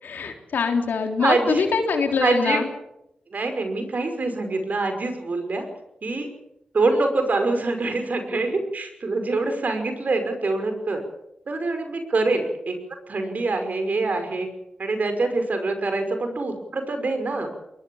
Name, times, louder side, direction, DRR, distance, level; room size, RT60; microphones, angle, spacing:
voice 1, 0.0-2.7, left 5 dB, 85° left, 4 dB, 3.5 m, -24 dB
voice 2, 1.2-1.7 2.2-2.6 3.3-5.7 6.0-6.3 6.7-11.0 11.5-12.8 13.1-14.5 14.8-17.5, right 3 dB, 60° right, 6 dB, 5.7 m, -25 dB
21.5 x 21.0 x 7.3 m, 0.82 s
cardioid pair, 45°, 3 cm